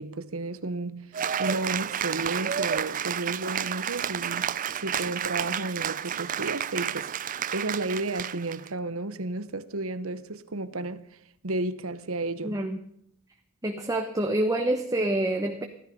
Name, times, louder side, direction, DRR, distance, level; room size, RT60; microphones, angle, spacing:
voice 1, 0.0-11.2 11.4-12.6, right 2 dB, 70° right, 1.1 m, -33 dB
Cheering / Applause, 1.1-8.7, right 8 dB, 40° right, 0.5 m, -31 dB
voice 2, 12.4-12.8 13.6-15.6, right 1 dB, 15° right, 1.1 m, -27 dB
16.0 x 14.0 x 5.4 m
head